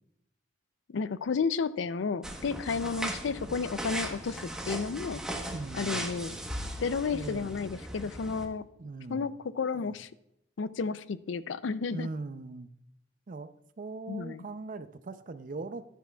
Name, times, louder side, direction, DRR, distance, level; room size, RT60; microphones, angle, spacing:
voice 1, 0.9-5.2 5.7-6.4 6.8-8.6 9.1-10.1 10.6-12.1 14.1-14.4, left 5 dB, 85° left, 15 dB, 0.4 m, -32 dB
sound 1, 2.2-8.5, right 1 dB, 5° right, 1.0 m, -38 dB
voice 2, 5.5-6.1 7.1-7.5 8.8-9.3 9.7-10.0 11.9-12.7 13.3-13.5 13.8-15.8, right 3 dB, 45° right, 12 dB, 0.5 m, -40 dB
11.0 x 10.0 x 2.3 m, 0.79 s
head